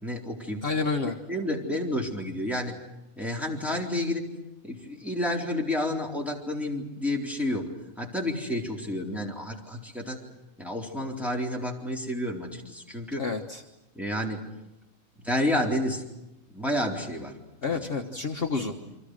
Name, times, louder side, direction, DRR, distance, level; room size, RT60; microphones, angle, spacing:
voice 1, 0.0-0.7 1.0-2.8 3.2-4.2 4.6-7.7 8.0-10.2 10.6-13.3 13.9-14.5 15.2-16.0 16.5-17.4 17.7-18.2 18.6-19.0, left 1 dB, ahead, -2 dB, 4.1 m, -30 dB
voice 2, 0.6-1.1 13.2-13.6 17.6-18.7, left 4 dB, 45° left, 2 dB, 1.4 m, -29 dB
29.5 x 24.5 x 6.5 m, 0.95 s
omnidirectional pair, 1.4 m